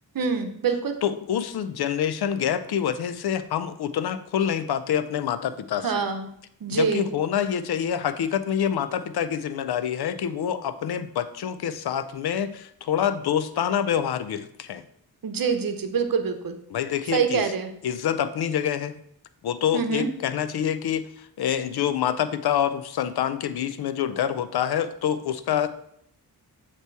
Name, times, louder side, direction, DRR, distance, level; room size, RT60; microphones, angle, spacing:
voice 1, 0.1-1.0 5.8-6.3 6.6-7.1 15.2-16.6 17.1-17.7 19.7-20.1, right 5 dB, 60° right, 7 dB, 0.8 m, -25 dB
voice 2, 1.0-6.0 6.7-14.8 16.7-17.4 17.8-18.9 19.4-25.7, left 9 dB, 80° left, 12 dB, 0.5 m, -26 dB
8.0 x 3.0 x 4.6 m, 0.71 s
cardioid pair, 70°, 38 cm